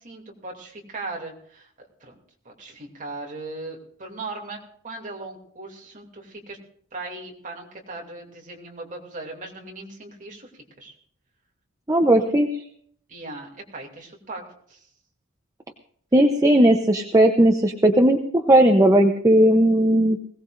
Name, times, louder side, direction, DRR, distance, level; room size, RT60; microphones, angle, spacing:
voice 1, 0.0-2.1 2.4-4.6 4.8-6.6 6.9-10.5 10.8-10.9 13.1-14.4 14.7-14.9, right 2 dB, 35° right, 0 dB, 2.7 m, -38 dB
voice 2, 11.9-12.5 16.1-20.2, right 1 dB, 15° right, 4 dB, 0.7 m, -17 dB
21.0 x 17.5 x 2.6 m, 0.63 s
head